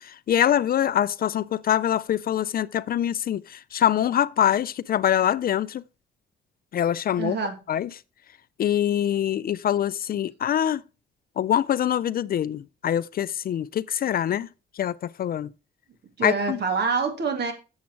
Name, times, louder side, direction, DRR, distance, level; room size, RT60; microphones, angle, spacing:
voice 1, 0.0-5.8 6.7-7.4 7.7-7.9 8.6-10.8 11.4-14.5 14.8-15.5 16.2-16.6, left 10 dB, 50° left, 0.4 m, -24 dB
voice 2, 7.2-7.5 16.2-17.5, right 5 dB, 60° right, 2.4 m, -26 dB
7.3 x 7.2 x 4.5 m
cardioid pair, 90°, 20 cm